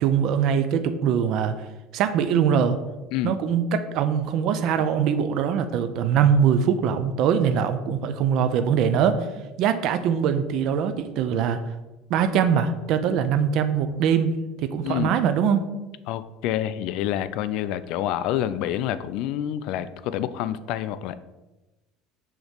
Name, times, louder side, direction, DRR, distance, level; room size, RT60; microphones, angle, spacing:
voice 1, 0.0-1.6 1.9-2.8 3.2-9.3 9.6-11.6 12.1-14.3 14.6-15.7, right 7 dB, 50° right, 9 dB, 0.4 m, -22 dB
voice 2, 16.1-21.1, left 11 dB, 60° left, 13 dB, 0.3 m, -27 dB
6.4 x 3.0 x 5.1 m, 1.1 s
cardioid pair, 155°, 0 cm